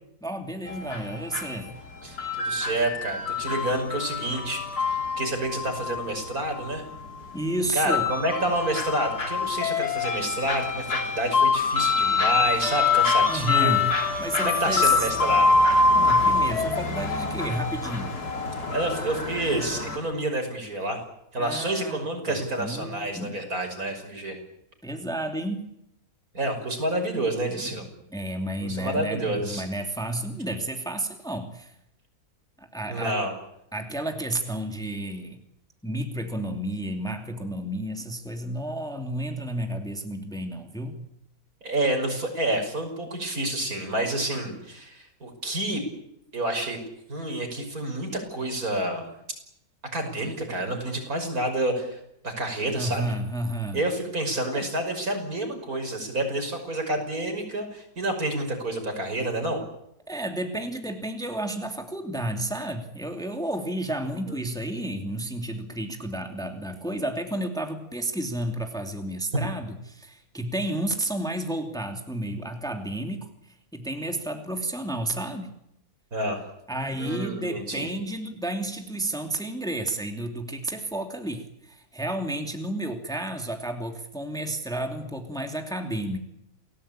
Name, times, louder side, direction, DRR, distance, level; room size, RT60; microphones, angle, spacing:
voice 1, 0.2-1.7 7.3-8.1 13.3-13.9 14.2-14.9 15.9-18.1 21.4-22.0 22.3-23.5 24.8-25.7 27.5-31.7 32.6-33.1 33.7-35.4 35.8-41.0 52.7-53.8 54.5-54.7 60.1-75.5 76.7-86.2, right 1 dB, ahead, 4 dB, 2.6 m, -31 dB
sound 1, 0.7-20.0, left 4 dB, 90° left, 3.5 m, -25 dB
voice 2, 2.0-6.8 7.7-13.9 14.4-15.6 18.7-21.0 21.3-24.4 26.3-27.8 28.6-29.6 32.9-33.3 41.6-45.8 46.3-46.8 47.1-49.1 49.9-52.0 52.2-53.1 53.7-59.6 64.3-64.4 76.1-76.4 77.0-77.9, right 1 dB, 70° right, 5 dB, 6.3 m, -29 dB
29.0 x 18.5 x 8.9 m, 0.80 s
omnidirectional pair, 1.6 m